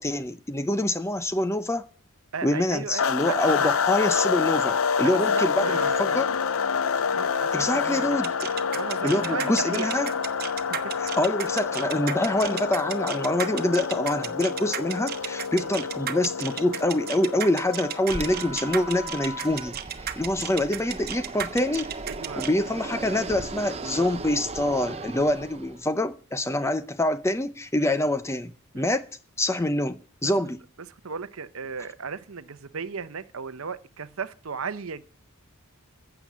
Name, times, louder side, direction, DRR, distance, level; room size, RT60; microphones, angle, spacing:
voice 1, 0.0-1.9 2.4-6.4 7.5-8.3 9.0-10.1 11.0-19.8 20.2-21.9 22.4-29.1 29.4-30.6, left 1 dB, 10° left, 0.6 m, -26 dB
voice 2, 2.3-3.7 5.0-6.2 7.1-8.2 8.7-10.0 11.0-11.1 15.5-15.7 22.1-22.5 26.6-26.7 27.8-27.9 28.7-28.8 30.2-30.3 31.0-35.0, right 5 dB, 65° right, 0.8 m, -35 dB
sound 1, 3.0-19.7, left 6 dB, 65° left, 0.5 m, -28 dB
sound 2, 8.2-22.5, right 9 dB, 45° right, 0.9 m, -33 dB
Fixed-wing aircraft airplane, 18.1-25.9, right 3 dB, 30° right, 0.7 m, -37 dB
15.5 x 7.0 x 7.3 m
head